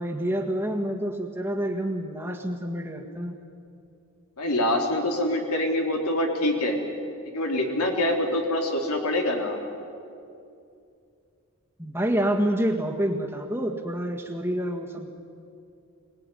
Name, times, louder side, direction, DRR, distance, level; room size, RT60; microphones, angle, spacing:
voice 1, 0.0-3.4 11.8-15.1, right 1 dB, 10° right, 2 dB, 1.7 m, -28 dB
voice 2, 4.4-6.8 7.3-9.6, left 1 dB, 90° left, 2 dB, 3.6 m, -25 dB
25.0 x 19.0 x 9.9 m, 2.5 s
head